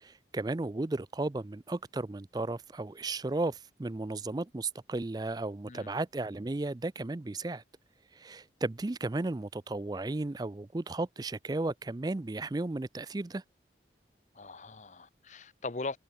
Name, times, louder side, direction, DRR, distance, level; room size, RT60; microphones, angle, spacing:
voice 1, 0.0-7.6 8.1-13.4, right 2 dB, 20° right, 0.4 m, -34 dB
voice 2, 5.7-6.0 14.3-16.0, left 3 dB, 40° left, 0.7 m, -40 dB
head